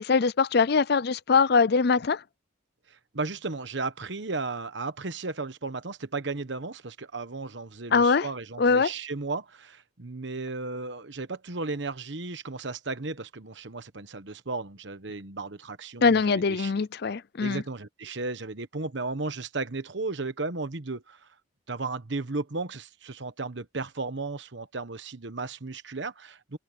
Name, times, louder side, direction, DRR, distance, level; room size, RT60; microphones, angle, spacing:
voice 1, 0.0-2.2 7.9-8.3 8.6-8.9 16.0-17.6, left 5 dB, 55° left, 0.5 m, -22 dB
voice 2, 2.9-16.8 17.4-21.3 21.7-26.6, right 3 dB, 65° right, 1.2 m, -35 dB
head